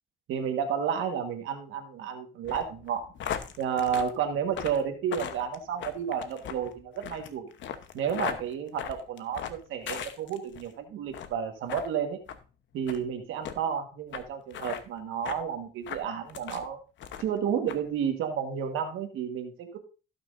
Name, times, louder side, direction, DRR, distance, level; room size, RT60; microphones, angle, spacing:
voice 1, 0.3-3.1 3.6-7.5 7.9-12.2 12.7-16.8 17.2-19.8, right 8 dB, 90° right, 5 dB, 1.5 m, -31 dB
sound 1, 2.4-10.7 11.1-11.4 11.7-11.9 12.3-12.4 12.9-13.0 13.4-13.6 14.1-14.2 14.5-14.8 15.3-15.4 15.8-16.7 17.0-17.4 17.7-17.8, left 8 dB, 70° left, 1.0 m, -38 dB
16.0 x 6.1 x 2.6 m, 0.33 s
cardioid pair, 90°, 20 cm